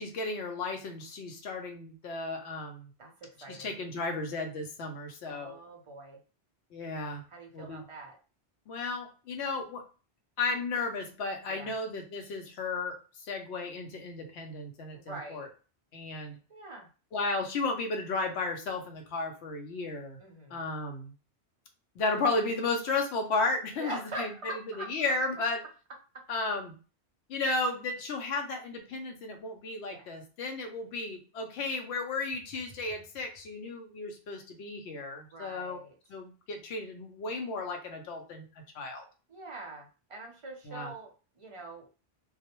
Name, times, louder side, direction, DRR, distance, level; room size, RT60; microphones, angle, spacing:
voice 1, 0.0-2.9 3.5-5.6 6.7-7.2 7.5-7.8 8.7-9.8 10.4-13.0 13.2-15.5 15.9-16.4 17.1-20.2 20.5-21.1 22.0-25.6 26.3-26.7 27.3-35.8 36.1-38.4 38.7-39.0 40.7-40.9, left 3 dB, 85° left, 4 dB, 0.9 m, -34 dB
voice 2, 3.0-3.8 5.3-6.2 7.3-8.2 11.5-11.7 14.9-15.4 16.5-16.9 20.2-20.6 23.7-25.1 29.9-30.1 35.2-35.9 39.3-41.1 41.4-41.9, right 2 dB, 40° right, 1 dB, 0.5 m, -43 dB
2.3 x 2.1 x 2.8 m, 0.34 s
omnidirectional pair, 1.1 m